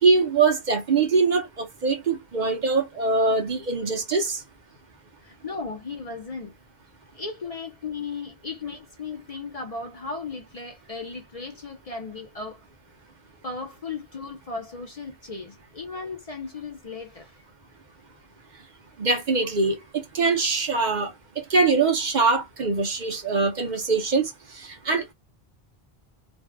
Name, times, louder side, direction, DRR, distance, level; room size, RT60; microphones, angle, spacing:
voice 1, 0.0-4.4 19.0-21.1 21.5-25.1, right 4 dB, 50° right, 0.8 m, -23 dB
voice 2, 5.2-6.5 7.1-12.6 13.4-17.4, left 4 dB, 45° left, 0.6 m, -36 dB
2.6 x 2.3 x 3.4 m
omnidirectional pair, 1.0 m